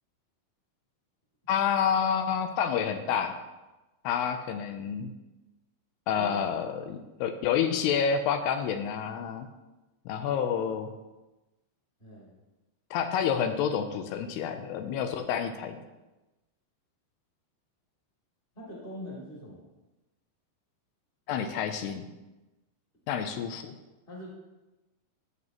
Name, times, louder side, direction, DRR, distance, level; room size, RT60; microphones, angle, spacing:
voice 1, 1.5-3.4 4.0-5.1 6.1-9.5 10.1-10.9 12.9-15.8 21.3-22.1 23.1-23.7, left 7 dB, 85° left, 7 dB, 2.6 m, -29 dB
voice 2, 6.2-6.5 12.0-12.3 18.5-19.6 24.1-24.3, left 1 dB, 20° left, -4 dB, 1.9 m, -43 dB
17.0 x 6.9 x 2.9 m, 1.1 s
omnidirectional pair, 4.8 m